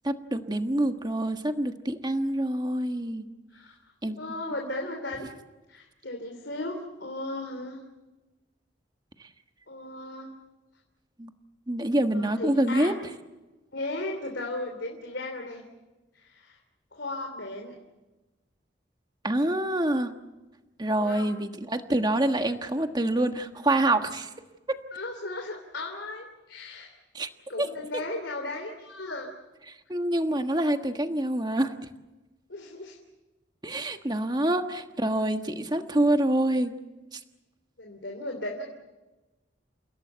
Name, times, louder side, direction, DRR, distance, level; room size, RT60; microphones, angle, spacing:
voice 1, 0.0-3.2 4.0-4.2 11.2-11.3 11.7-12.9 19.2-20.1 20.8-24.3 27.1-27.3 27.6-27.7 29.7-31.7 33.6-36.7 37.1-37.2, right 1 dB, 25° right, 7 dB, 1.4 m, -26 dB
voice 2, 4.1-5.3 5.7-7.8 9.7-10.3 12.1-13.0 13.7-15.7 16.1-16.6 16.9-17.8 21.0-21.3 24.9-26.9 27.5-29.3 32.5-33.0 37.8-38.6, left 2 dB, 80° left, 2 dB, 3.1 m, -36 dB
30.0 x 17.0 x 8.1 m, 1.1 s
head